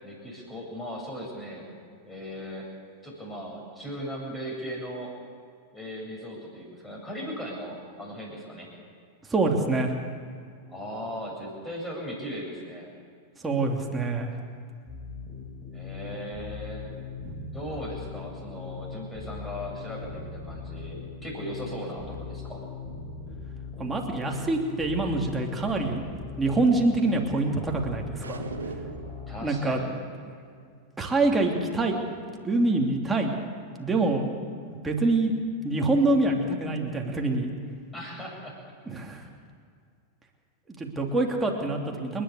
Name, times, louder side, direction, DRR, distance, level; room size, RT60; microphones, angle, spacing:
voice 1, 0.0-1.7 2.1-2.7 3.0-5.1 5.7-8.7 10.7-12.9 15.7-16.8 17.5-22.6 29.3-29.9 37.9-38.5, equal, 10° left, -2 dB, 7.9 m, -37 dB
voice 2, 9.3-9.9 13.4-14.3 17.3-17.4 23.8-26.0 26.4-28.4 29.4-29.8 30.3-30.4 31.0-32.0 32.4-33.3 33.8-34.2 34.7-35.3 35.6-37.5 38.9-39.2 40.7-42.2, right 2 dB, 10° right, 1 dB, 3.0 m, -25 dB
Dreamer Bass Rise, 14.9-29.5, left 5 dB, 25° left, 4.8 m, -40 dB
sound 1, 28.2-29.3, right 4 dB, 75° right, 1.5 m, -38 dB
29.5 x 11.0 x 8.3 m, 2.2 s
figure-of-eight pair, 90°, 0 cm